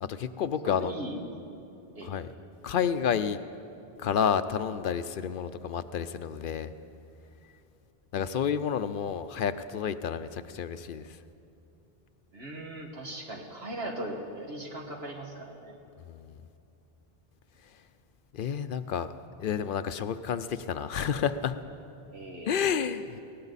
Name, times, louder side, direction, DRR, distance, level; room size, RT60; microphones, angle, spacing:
voice 1, 0.0-0.9 2.0-2.3 2.6-3.4 4.0-6.7 8.1-11.2 16.1-16.4 18.3-19.1 19.4-21.6 22.5-23.2, left 7 dB, 65° left, 12 dB, 0.7 m, -30 dB
voice 2, 0.6-1.2 2.0-2.1 12.3-15.7 22.1-22.7, right 1 dB, 85° right, 0 dB, 2.2 m, -39 dB
20.0 x 17.5 x 4.1 m, 2.8 s
omnidirectional pair, 1.0 m